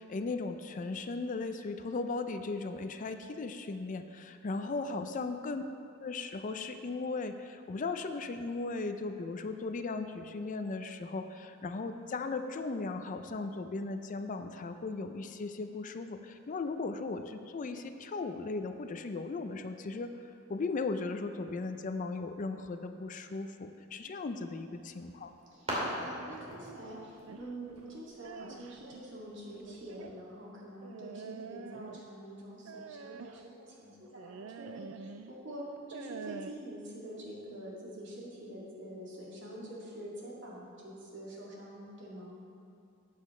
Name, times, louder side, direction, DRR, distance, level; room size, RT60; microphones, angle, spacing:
voice 1, 0.0-5.6 6.0-20.2 20.5-25.3, left 3 dB, 40° left, 8 dB, 0.4 m, -37 dB
voice 2, 4.6-5.0 24.0-24.5 25.5-42.3, right 1 dB, 60° right, -5 dB, 2.3 m, -46 dB
sound 1, 24.7-29.9, equal, 30° right, 2.4 m, -42 dB
sound 2, 27.3-29.0 29.7-30.2 30.8-32.2 32.7-33.5 34.2-35.3 35.8-36.5, right 6 dB, 75° right, 0.3 m, -46 dB
13.0 x 8.4 x 3.2 m, 2.5 s
head